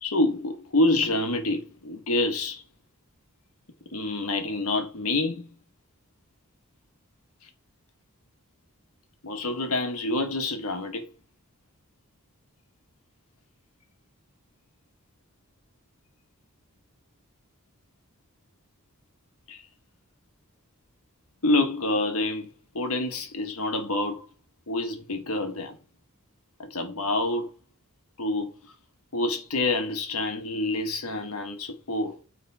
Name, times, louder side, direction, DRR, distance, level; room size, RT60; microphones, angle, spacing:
voice 1, 0.0-2.6 3.9-5.5 9.2-11.0 19.5-19.6 21.4-22.5 22.7-24.3 24.7-25.8 26.6-27.5 28.2-28.7 29.1-32.2, left 2 dB, 85° left, 1.6 m, -27 dB
9.0 x 3.7 x 4.8 m
head